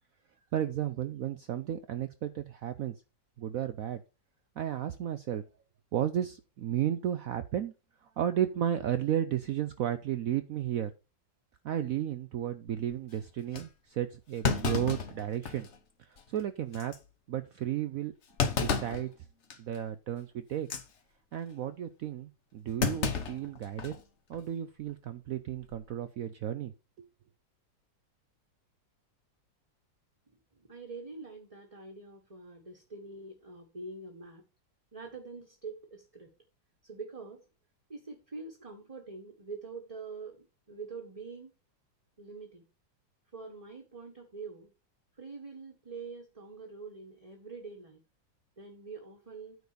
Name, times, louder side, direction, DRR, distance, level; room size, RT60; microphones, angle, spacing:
voice 1, 0.5-3.0 3.4-4.0 4.6-5.4 5.9-7.7 8.0-10.9 11.6-15.7 16.0-16.9 17.3-18.1 18.6-19.1 19.6-20.7 21.3-23.9 24.3-26.7 27.0-27.1, right 10 dB, 70° right, 11 dB, 0.8 m, -33 dB
Thump thud, 12.7-13.0 13.5-13.7 14.4-15.8 16.2-16.3 16.7-17.0 18.4-19.1 19.5-19.8 20.6-20.9 22.8-24.0 24.3-24.4 25.6-25.9, left 5 dB, 45° left, 1.2 m, -31 dB
voice 2, 30.6-34.4 34.9-36.3 36.8-37.4 37.9-41.5 42.2-42.7 43.3-44.7 45.2-48.0 48.6-49.6, right 4 dB, 20° right, 2 dB, 1.3 m, -45 dB
9.3 x 4.0 x 6.7 m, 0.30 s
omnidirectional pair, 2.0 m